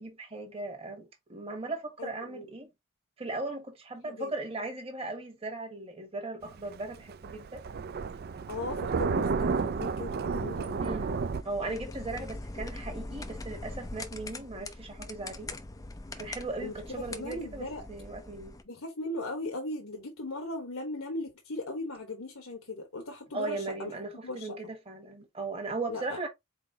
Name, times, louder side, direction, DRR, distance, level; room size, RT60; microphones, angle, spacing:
voice 1, 0.0-2.7 3.2-7.6 10.8-15.5 16.1-18.5 23.3-26.3, right 2 dB, 25° right, 1.3 m, -38 dB
voice 2, 2.0-2.5 4.0-4.3 8.5-10.8 12.1-12.3 12.6-12.7 16.6-17.8 18.6-23.9 24.2-24.6 25.9-26.2, left 2 dB, 70° left, 1.1 m, -38 dB
Thunder, 6.4-11.4, right 5 dB, 45° right, 0.4 m, -31 dB
sound 1, 11.3-18.6, left 2 dB, 15° left, 0.4 m, -42 dB
4.3 x 4.0 x 2.7 m
head